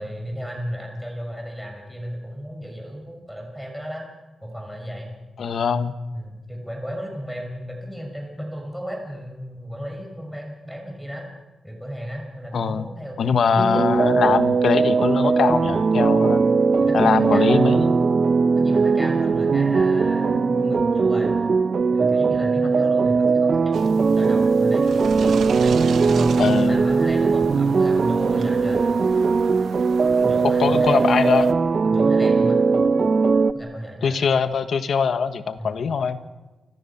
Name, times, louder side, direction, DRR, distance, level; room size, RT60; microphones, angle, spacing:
voice 1, 0.0-4.1 4.4-5.1 6.1-11.3 11.6-13.9 16.8-18.0 18.5-21.3 21.9-24.9 25.6-28.8 30.0-31.2 31.8-32.6 33.5-34.1 35.6-35.7, equal, ahead, 1 dB, 6.2 m, -33 dB
voice 2, 5.4-5.9 12.5-12.9 13.2-16.4 16.9-17.9 26.4-26.8 30.6-31.5 34.0-36.2, left 6 dB, 65° left, 9 dB, 1.5 m, -22 dB
sound 1, 13.6-33.5, right 4 dB, 45° right, 0.8 m, -19 dB
sound 2, 23.7-31.5, right 7 dB, 85° right, 1.1 m, -36 dB
29.5 x 25.5 x 5.8 m, 1.2 s
wide cardioid pair, 160°, 0 cm